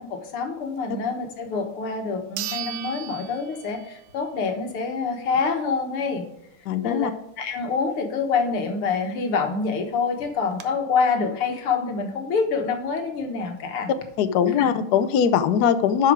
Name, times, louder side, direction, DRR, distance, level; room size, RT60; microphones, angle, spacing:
voice 1, 0.0-6.3 6.8-7.1 7.4-13.9 14.6-14.7, left 5 dB, 85° left, 4 dB, 2.3 m, -26 dB
sound 1, 1.5-1.6 2.4-4.1 4.5-4.6 9.2-9.3 9.5-9.6 10.2-10.6, right 10 dB, 70° right, 1.5 m, -35 dB
voice 2, 6.7-7.1 14.2-16.1, left 8 dB, 70° left, 10 dB, 1.0 m, -21 dB
11.5 x 5.2 x 4.9 m, 0.83 s
omnidirectional pair, 2.4 m